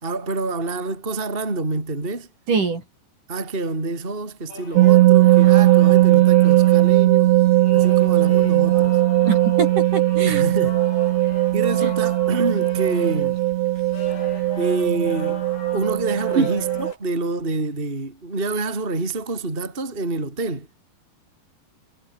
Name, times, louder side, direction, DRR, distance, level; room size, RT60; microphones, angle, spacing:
voice 1, 0.0-2.3 3.3-7.3 7.7-9.0 10.2-10.8 11.5-13.4 14.6-15.4 15.7-20.7, right 2 dB, 10° right, 3.9 m, -27 dB
voice 2, 2.5-2.8 9.2-10.4 11.8-11.9 16.4-16.5, right 5 dB, 45° right, 5.8 m, -23 dB
sound 1, 4.5-17.0, left 5 dB, 80° left, 8.9 m, -40 dB
sound 2, 4.7-16.9, right 16 dB, 80° right, 3.2 m, -18 dB
omnidirectional pair, 5.2 m